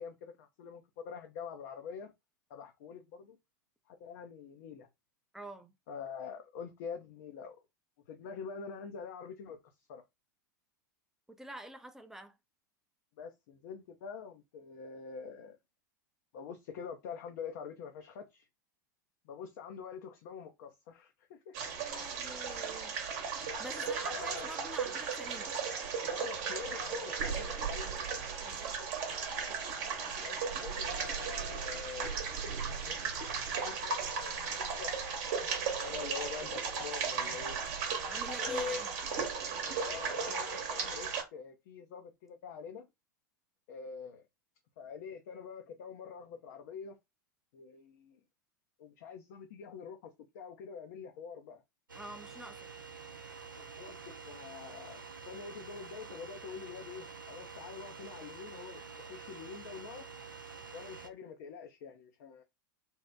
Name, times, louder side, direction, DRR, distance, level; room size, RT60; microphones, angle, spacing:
voice 1, 0.0-2.1 2.5-3.4 3.9-4.9 5.9-7.6 8.1-9.6 9.9-10.0 13.2-15.6 16.3-18.5 19.2-21.6 23.8-24.5 26.1-28.0 30.2-32.2 32.8-34.4 34.8-34.9 35.8-37.6 38.3-38.9 39.7-42.9 43.7-44.2 44.8-47.0 47.5-48.2 48.8-51.6 53.6-54.0 54.2-60.1 60.7-62.4, left 6 dB, 55° left, 0.5 m, -45 dB
voice 2, 5.3-5.7 11.4-12.4 21.8-23.0 23.4-25.5 28.4-28.8 38.1-38.9 51.9-52.7, right 1 dB, 5° right, 0.5 m, -47 dB
sound 1, 21.5-41.2, right 5 dB, 50° right, 0.9 m, -36 dB
sound 2, 51.9-61.1, right 5 dB, 80° right, 0.5 m, -48 dB
2.8 x 2.1 x 3.4 m
figure-of-eight pair, 90°, 11 cm